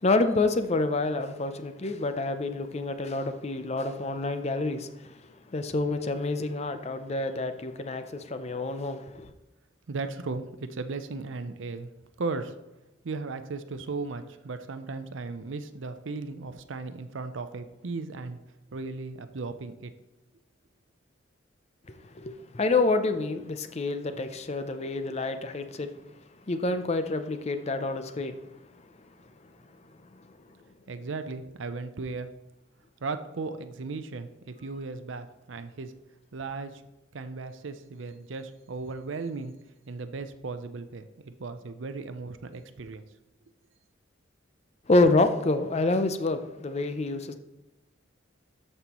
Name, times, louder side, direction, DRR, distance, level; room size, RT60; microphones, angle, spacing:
voice 1, 0.0-4.9 5.5-9.3 21.9-25.9 26.5-28.4 44.9-47.3, left 2 dB, 35° left, 9 dB, 0.5 m, -27 dB
voice 2, 9.9-11.9 12.2-12.5 13.0-18.4 18.7-19.9 30.9-32.3 33.0-35.9 36.3-36.8 37.1-39.5 39.9-43.0, right 3 dB, 70° right, 10 dB, 0.6 m, -36 dB
12.5 x 5.5 x 3.0 m, 1.0 s
head